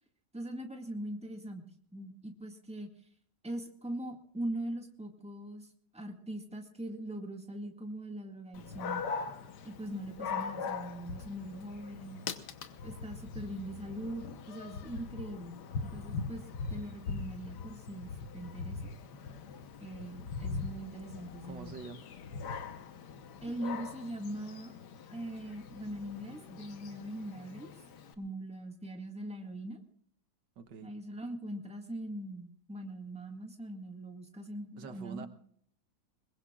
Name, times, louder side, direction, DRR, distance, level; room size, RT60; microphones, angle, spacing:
voice 1, 0.3-1.7 1.9-2.9 3.4-5.7 5.9-9.0 9.6-12.2 12.8-18.9 19.8-21.7 23.4-24.7 25.1-27.7 28.2-29.8 30.8-35.3, right 1 dB, 5° right, 2 dB, 1.8 m, -41 dB
Dog, 8.5-28.1, left 5 dB, 70° left, 1.7 m, -42 dB
voice 2, 21.5-22.1 30.6-30.9 34.8-35.3, right 5 dB, 80° right, 9 dB, 1.8 m, -45 dB
22.5 x 21.5 x 2.4 m, 0.63 s
omnidirectional pair, 1.9 m